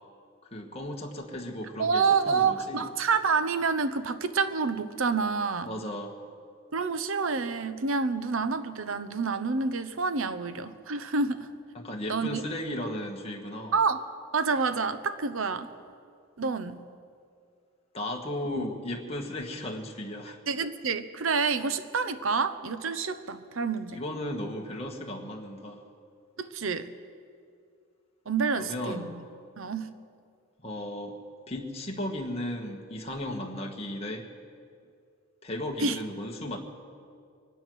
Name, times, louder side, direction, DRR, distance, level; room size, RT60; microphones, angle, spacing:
voice 1, 0.5-2.8 5.6-6.2 11.7-13.7 17.9-20.4 23.9-25.8 28.6-29.2 30.6-31.2 31.5-34.3 35.4-36.6, left 1 dB, 30° left, 0 dB, 1.4 m, -35 dB
voice 2, 1.8-5.7 6.7-11.5 12.1-12.4 13.7-14.1 14.3-15.7 16.4-16.8 18.5-18.7 20.5-24.0 26.4-26.9 28.3-29.1 29.6-29.9 35.8-36.0, right 5 dB, 70° right, 12 dB, 0.8 m, -28 dB
23.5 x 10.0 x 6.2 m, 2.3 s
head